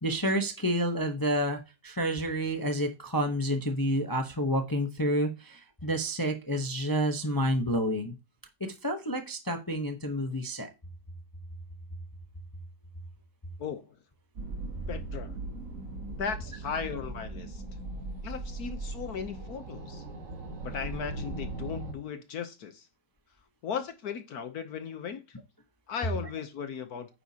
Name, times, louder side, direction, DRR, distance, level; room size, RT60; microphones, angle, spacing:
voice 1, 0.0-8.2 8.6-10.7, equal, 20° left, 0.6 m, -29 dB
voice 2, 13.6-13.9 14.9-15.4 16.0-17.6 18.2-20.0 20.6-22.9 23.6-25.4 25.9-27.1, left 7 dB, 60° left, 1.2 m, -37 dB
sound 1, 14.4-21.9, right 2 dB, 45° right, 1.4 m, -39 dB
9.7 x 7.3 x 2.8 m
omnidirectional pair, 2.1 m